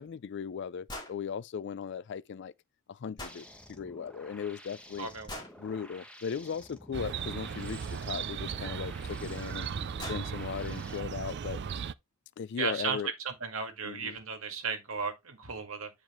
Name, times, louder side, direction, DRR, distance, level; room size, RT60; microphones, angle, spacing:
voice 1, 0.0-2.5 2.9-5.1 5.6-9.7 10.1-11.6 12.4-13.1 13.8-14.2, left 6 dB, 55° left, 0.4 m, -37 dB
sound 1, 0.9-1.2 3.2-3.4 5.3-5.6 7.8-7.9 9.2-9.3 9.7-9.8 10.0-10.3, left 1 dB, 20° left, 2.4 m, -41 dB
sound 2, 3.2-11.0, equal, 5° left, 1.2 m, -52 dB
voice 2, 5.0-5.4 12.6-13.0 13.2-15.9, right 5 dB, 70° right, 2.0 m, -35 dB
Chirp tweet, 6.9-11.9, right 6 dB, 50° right, 0.4 m, -37 dB
9.2 x 4.9 x 3.1 m
head